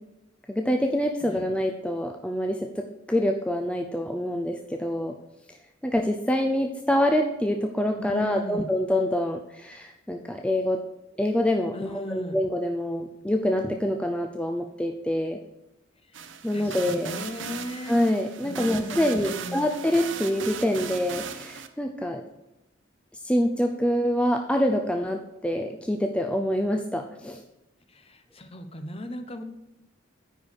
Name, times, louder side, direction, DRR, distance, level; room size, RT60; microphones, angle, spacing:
voice 1, 0.5-5.1 5.5-5.6 5.8-10.8 11.2-15.4 16.4-17.1 17.9-22.2 23.2-27.4, left 1 dB, 5° left, 3 dB, 0.5 m, -26 dB
voice 2, 8.0-8.7 11.7-12.4 16.1-16.2 16.5-18.0 18.4-19.6 27.9-29.4, equal, 30° left, 7 dB, 0.9 m, -37 dB
sound 1, 16.1-21.7, right 7 dB, 70° right, 0.7 m, -38 dB
9.6 x 4.6 x 7.0 m, 0.95 s
head